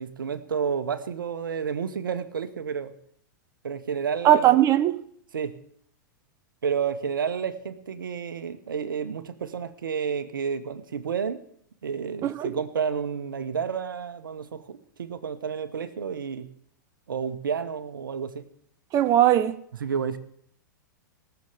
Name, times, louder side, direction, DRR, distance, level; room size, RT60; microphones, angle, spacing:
voice 1, 0.0-2.9 3.6-4.6 5.3-5.6 6.6-11.4 11.8-16.5 17.1-18.5 19.8-20.2, right 7 dB, 80° right, 1.1 m, -30 dB
voice 2, 4.2-5.0 12.2-12.5 18.9-19.5, right 12 dB, 30° right, 0.6 m, -19 dB
17.5 x 7.1 x 6.8 m
hypercardioid pair, 105°, 11 cm